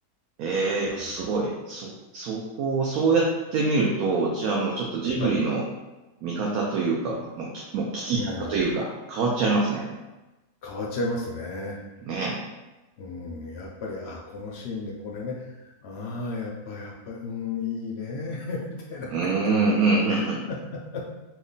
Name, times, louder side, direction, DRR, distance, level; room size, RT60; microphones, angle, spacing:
voice 1, 0.4-5.6 6.2-10.0 12.0-12.4 19.1-20.4, right 3 dB, 75° right, -2 dB, 1.0 m, -25 dB
voice 2, 1.0-1.3 5.2-5.4 8.1-8.5 10.6-11.8 13.0-19.1 20.1-21.0, left 3 dB, 70° left, -2 dB, 0.6 m, -34 dB
3.0 x 2.2 x 3.8 m, 1.1 s
omnidirectional pair, 1.6 m